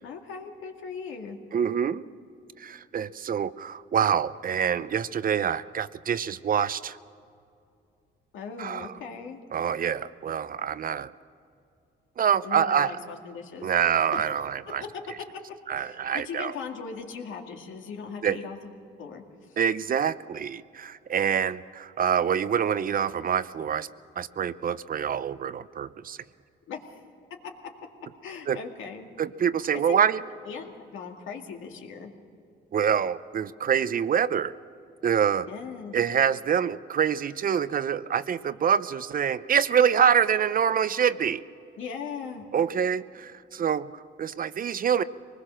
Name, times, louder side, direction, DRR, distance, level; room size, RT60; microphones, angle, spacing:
voice 1, 0.0-1.4 8.3-9.4 12.4-13.7 14.1-14.3 14.8-15.3 15.8-18.7 19.0-19.6 26.7-26.8 28.2-29.1 29.7-30.0 30.4-32.1 35.5-36.0 41.8-42.5, left 6 dB, 80° left, 2 dB, 2.2 m, -39 dB
voice 2, 1.5-2.0 2.6-7.0 8.6-8.9 9.5-11.1 12.2-13.0 13.6-14.8 15.7-16.5 18.2-18.4 19.6-23.9 24.2-26.2 28.5-28.6 29.2-30.2 32.7-34.5 35.0-35.5 35.9-41.4 42.5-45.0, right 8 dB, 45° right, 15 dB, 0.6 m, -26 dB
23.5 x 20.0 x 6.3 m, 2.5 s
cardioid pair, 90°, 20 cm